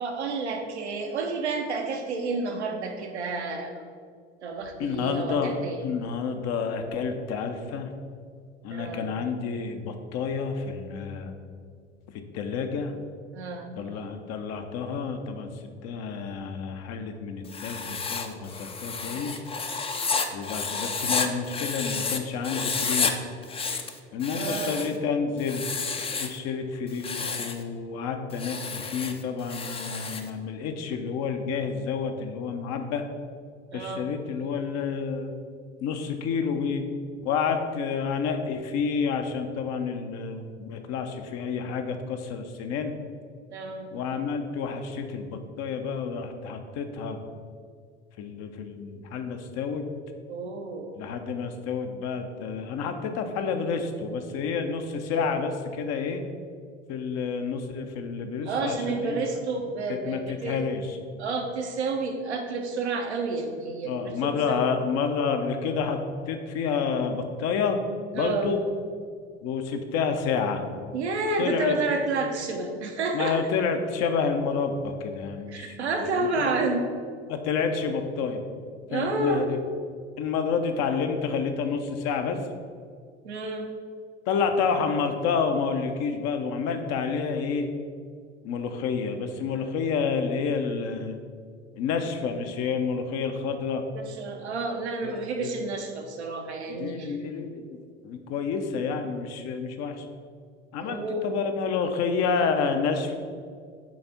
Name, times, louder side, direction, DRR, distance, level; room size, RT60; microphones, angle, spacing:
voice 1, 0.0-3.8 4.4-5.8 8.7-9.0 13.3-13.7 24.3-24.8 33.7-34.1 43.5-44.0 50.3-50.9 58.4-60.6 61.2-64.6 68.1-68.5 70.9-73.4 75.5-76.9 78.9-79.5 83.2-83.7 93.9-97.2 100.8-101.3, right 3 dB, 80° right, 2 dB, 0.9 m, -30 dB
voice 2, 4.8-7.9 8.6-11.3 12.3-12.9 13.8-15.5 15.8-19.4 20.3-23.1 24.1-25.7 26.2-33.0 33.7-35.3 35.8-36.8 37.2-42.9 43.9-47.2 48.2-49.8 51.0-56.2 56.9-59.2 59.9-61.0 63.8-66.0 66.3-67.8 68.1-68.6 69.4-70.6 71.4-71.8 72.2-72.3 73.1-76.6 77.3-78.4 78.9-79.6 80.2-82.4 84.3-87.7 88.4-91.2 91.8-93.8 95.0-95.5 96.7-100.1 100.7-103.1, left 5 dB, 50° left, 6 dB, 0.8 m, -29 dB
Writing, 17.4-22.2 22.4-23.1 23.4-25.0 25.4-26.4 26.9-27.6 28.3-30.3, left 4 dB, 15° left, 0.6 m, -31 dB
6.4 x 3.4 x 5.8 m, 2.1 s
figure-of-eight pair, 70°, 33 cm